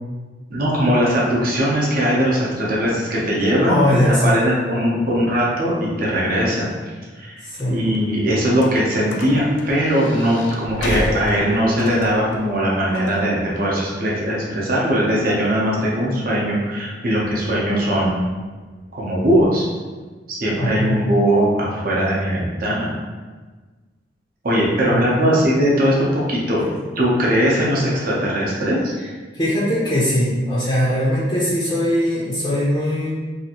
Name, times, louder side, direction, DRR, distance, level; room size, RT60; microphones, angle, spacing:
voice 1, 0.5-6.7 7.2-7.4 7.7-18.2 18.9-19.7 20.3-22.9 24.4-26.6 27.0-28.9, equal, 55° right, -4 dB, 0.7 m, -20 dB
voice 2, 3.7-4.4 7.5-7.8 20.6-21.0 24.8-25.4 26.6-26.7 29.3-33.1, equal, 20° left, -7 dB, 0.5 m, -20 dB
sound 1, 7.5-19.5, left 1 dB, 85° left, 0.4 m, -33 dB
2.8 x 2.5 x 2.8 m, 1.3 s
head